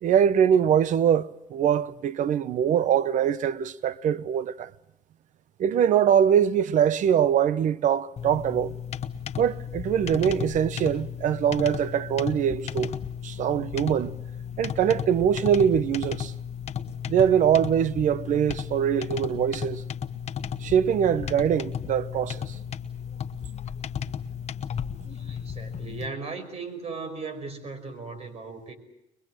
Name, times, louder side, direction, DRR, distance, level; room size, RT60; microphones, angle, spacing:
voice 1, 0.0-4.7 5.6-8.7 9.4-12.9 13.2-14.2 14.6-16.3 17.1-19.8 20.6-22.6, right 9 dB, 70° right, 0.8 m, -23 dB
sound 1, 8.2-26.1, left 8 dB, 55° left, 1.1 m, -34 dB
voice 2, 25.0-28.7, right 4 dB, 50° right, 5.3 m, -37 dB
23.0 x 22.5 x 7.8 m
cardioid pair, 100°, 13 cm